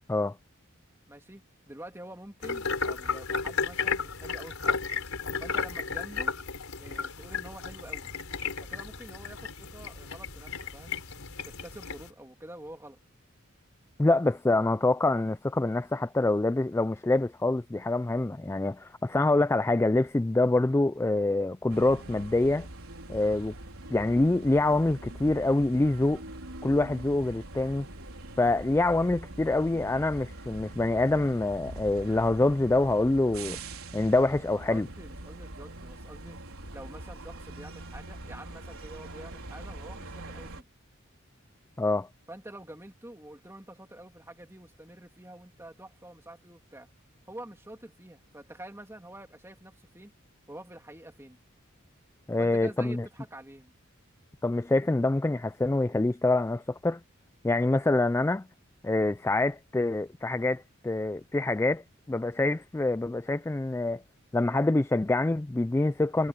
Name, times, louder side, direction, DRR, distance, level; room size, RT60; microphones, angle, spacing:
voice 1, 1.1-4.8 5.4-6.3 6.8-8.1 8.6-11.0 11.5-13.0 34.7-36.4 36.7-40.7 42.3-46.9 47.3-50.1 50.5-51.4 52.4-53.7, right 1 dB, 10° right, 2.9 m, -47 dB
sound 1, 2.4-12.1, left 5 dB, 90° left, 3.9 m, -33 dB
voice 2, 14.0-22.7 23.1-23.5 23.9-26.2 26.6-27.9 28.4-33.6 33.9-34.9 41.8-42.1 52.3-53.1 54.4-57.0 57.4-58.5 58.8-64.0 64.3-66.3, left 2 dB, 10° left, 0.3 m, -26 dB
sound 2, 21.7-40.6, right 2 dB, 90° right, 4.4 m, -43 dB
head